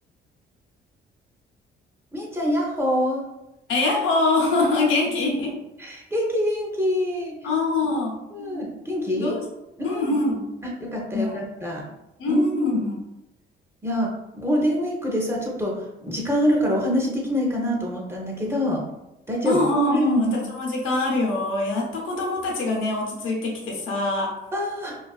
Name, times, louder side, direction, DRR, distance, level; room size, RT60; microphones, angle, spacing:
voice 1, 2.1-3.2 5.2-5.3 5.8-7.3 8.3-9.4 9.8-10.2 10.6-11.8 12.3-12.8 13.8-18.8 19.3-19.6 19.9-20.4 24.5-25.0, equal, 15° right, -2 dB, 0.6 m, -25 dB
voice 2, 3.7-5.6 7.4-8.7 9.1-9.5 9.8-10.5 11.1-11.4 12.2-13.0 19.4-24.3, left 2 dB, 85° left, -1 dB, 0.7 m, -24 dB
2.4 x 2.2 x 2.3 m, 0.91 s
cardioid pair, 90°, 20 cm